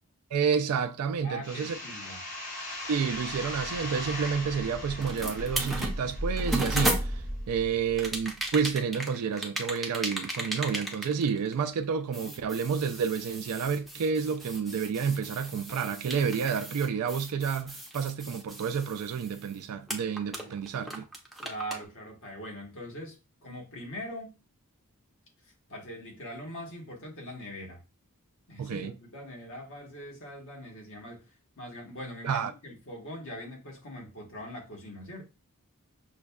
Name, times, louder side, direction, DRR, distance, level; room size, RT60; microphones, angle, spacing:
voice 1, 0.3-1.8 2.9-21.0 28.6-28.9 32.2-32.5, right 6 dB, 75° right, 0.3 m, -30 dB
voice 2, 1.2-2.2 11.7-11.8 20.3-20.5 21.4-24.4 25.4-27.8 28.5-35.2, equal, 60° left, 1.2 m, -42 dB
sound 1, 1.4-6.9, left 1 dB, 85° left, 2.2 m, -40 dB
sound 2, 2.8-8.5, equal, 55° right, 0.7 m, -37 dB
sound 3, 5.0-7.4 8.0-11.8 12.1-19.5 19.9-21.8, right 1 dB, ahead, 0.5 m, -36 dB
6.1 x 2.2 x 2.2 m
head